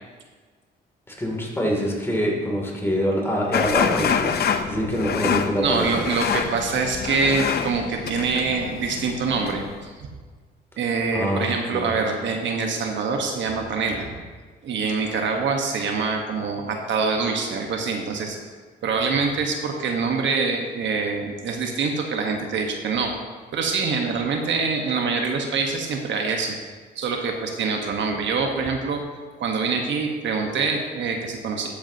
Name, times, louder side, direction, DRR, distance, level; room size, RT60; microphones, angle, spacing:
voice 1, 1.2-5.9 11.1-11.9, equal, 10° left, -2 dB, 2.8 m, -25 dB
sound 1, 3.5-9.8, left 7 dB, 55° left, 0.7 m, -26 dB
voice 2, 5.6-9.9 10.8-14.1 14.6-18.4 18.8-23.1 23.5-26.5 26.9-29.0 29.4-31.7, right 4 dB, 70° right, 3 dB, 1.3 m, -25 dB
13.5 x 8.5 x 2.9 m, 1.4 s
cardioid pair, 90°, 20 cm